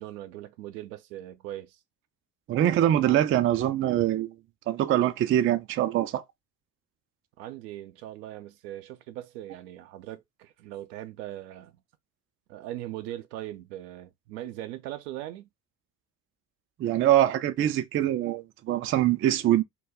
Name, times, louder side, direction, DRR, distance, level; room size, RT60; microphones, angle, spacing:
voice 1, 0.0-1.8 7.4-11.8 12.5-15.5, right 14 dB, 80° right, 0.6 m, -40 dB
voice 2, 2.5-4.3 4.7-6.2 16.8-19.6, right 12 dB, 30° right, 0.3 m, -24 dB
2.2 x 2.2 x 3.4 m
hypercardioid pair, 55°, 49 cm